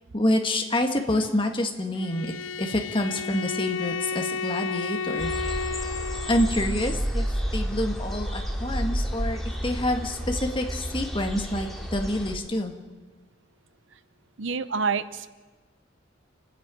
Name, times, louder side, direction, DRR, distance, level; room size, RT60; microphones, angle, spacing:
voice 1, 0.1-2.3 2.6-5.3 6.3-7.3 7.5-12.7, left 1 dB, 25° left, 4 dB, 1.9 m, -27 dB
Bowed string instrument, 1.9-6.7, left 5 dB, 80° left, 0.6 m, -32 dB
sound 1, 5.2-12.3, equal, ahead, 2.6 m, -30 dB
voice 2, 14.4-15.3, right 5 dB, 70° right, 14 dB, 0.8 m, -27 dB
29.0 x 10.0 x 9.2 m, 1.3 s
head